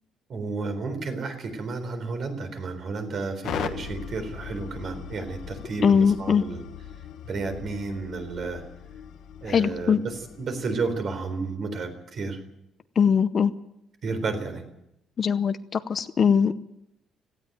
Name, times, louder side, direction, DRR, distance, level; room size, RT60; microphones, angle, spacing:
voice 1, 0.3-6.6 7.3-8.6 9.4-12.4 14.0-14.6, right 4 dB, 40° right, 7 dB, 4.0 m, -32 dB
sound 1, 3.4-11.5, left 9 dB, 60° left, 1.3 m, -39 dB
voice 2, 5.8-6.4 9.5-10.0 13.0-13.5 15.2-16.5, left 6 dB, 35° left, 12 dB, 0.7 m, -21 dB
17.5 x 16.0 x 9.3 m, 0.83 s
cardioid pair, 160°, 0 cm